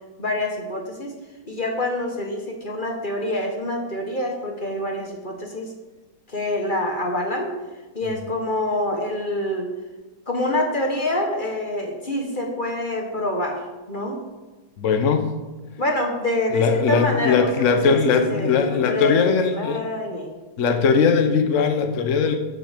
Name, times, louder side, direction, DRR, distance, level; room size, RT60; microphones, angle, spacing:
voice 1, 0.2-1.2 1.5-5.7 6.3-7.5 7.9-9.7 10.3-14.2 15.8-18.0 18.3-20.4, left 1 dB, 30° left, 2 dB, 1.3 m, -26 dB
voice 2, 14.8-15.3 16.5-19.9 20.6-22.3, left 5 dB, 50° left, 5 dB, 1.0 m, -20 dB
13.5 x 6.5 x 5.1 m, 1.2 s
omnidirectional pair, 2.1 m